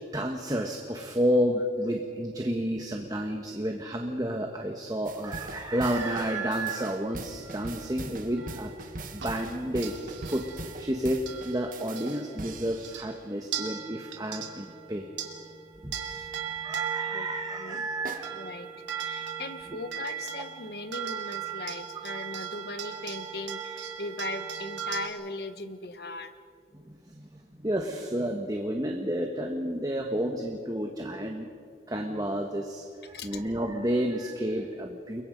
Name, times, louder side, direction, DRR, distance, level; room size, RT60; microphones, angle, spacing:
voice 1, 0.0-8.7 9.1-15.1 15.8-15.9 16.6-18.4 26.7-31.5 31.9-35.2, equal, 20° right, 3 dB, 1.3 m, -31 dB
sound 1, 5.1-13.2 18.1-18.2, right 2 dB, 45° right, 1.7 m, -41 dB
sound 2, 5.8-12.5 12.8-13.1 13.5-25.1, right 8 dB, 85° right, 2.7 m, -38 dB
voice 2, 18.3-26.3 33.1-33.3, left 2 dB, 60° left, 10 dB, 1.3 m, -39 dB
30.0 x 22.5 x 5.3 m, 2.2 s
head